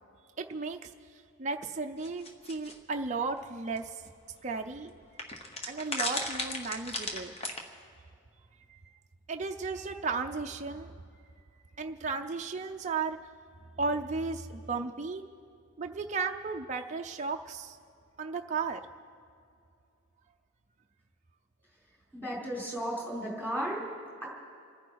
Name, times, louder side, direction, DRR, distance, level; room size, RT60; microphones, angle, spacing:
voice 1, 0.4-0.8 1.4-3.9 4.4-4.9 5.7-7.3 9.3-10.9 11.8-13.2 13.8-15.2 15.8-17.7 18.2-18.8, right 4 dB, 35° right, 3 dB, 0.6 m, -34 dB
sound 1, 2.0-2.7 3.8-3.9 4.1-4.2 5.2-7.6, left 2 dB, 30° left, 1.3 m, -34 dB
voice 2, 22.1-23.8 24.2-24.3, equal, 10° left, -4 dB, 3.9 m, -34 dB
27.5 x 10.5 x 4.7 m, 2.5 s
head